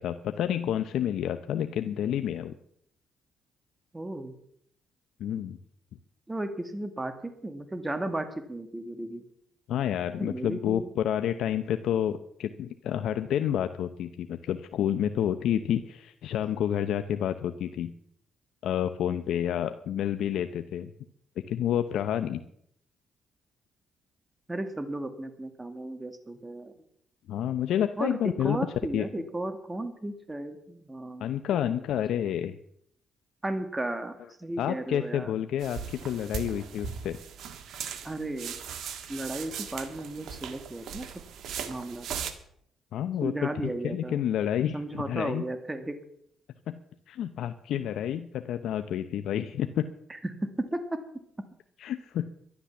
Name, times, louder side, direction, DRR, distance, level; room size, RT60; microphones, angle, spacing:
voice 1, 0.0-2.5 5.2-5.6 9.7-17.9 18.6-20.9 21.5-22.4 27.3-28.6 28.9-29.1 31.2-32.5 34.6-37.2 42.9-45.4 46.7-46.8 47.1-49.9 51.8-52.3, left 10 dB, 75° left, 9 dB, 0.7 m, -29 dB
voice 2, 3.9-4.3 6.3-9.2 10.2-10.9 24.5-26.7 28.0-31.3 31.5-31.8 32.2-32.3 33.4-35.3 38.0-38.6 39.1-41.1 41.7-42.1 43.2-44.2 44.7-46.0 50.1-50.8, right 1 dB, 15° right, 8 dB, 1.9 m, -34 dB
sound 1, 35.6-42.3, right 7 dB, 70° right, 1.6 m, -38 dB
12.0 x 11.5 x 7.1 m, 0.69 s
cardioid pair, 90°, 0 cm